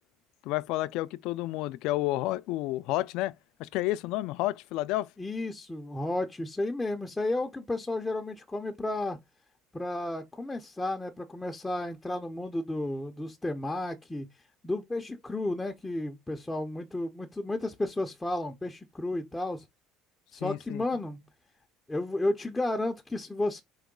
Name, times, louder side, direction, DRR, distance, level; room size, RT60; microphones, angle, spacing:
voice 1, 0.4-3.3 3.6-5.1 20.4-20.8, left 17 dB, 65° left, 0.4 m, -30 dB
voice 2, 5.2-9.2 9.7-14.3 14.6-19.6 20.3-21.2 21.9-23.6, left 2 dB, 10° left, 0.5 m, -32 dB
4.6 x 3.0 x 3.7 m
cardioid pair, 155°, 0 cm